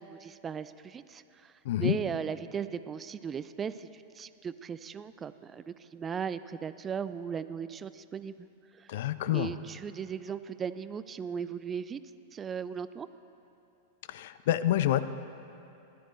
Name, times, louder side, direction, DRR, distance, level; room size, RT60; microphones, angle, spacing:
voice 1, 0.0-1.5 1.8-8.5 8.8-9.0 9.3-12.0 12.3-13.1, right 7 dB, 25° right, 14 dB, 0.3 m, -37 dB
voice 2, 1.7-2.0 8.9-9.5 14.1-15.0, left 13 dB, 60° left, 14 dB, 0.4 m, -27 dB
14.5 x 12.0 x 3.2 m, 2.8 s
figure-of-eight pair, 95°, 0 cm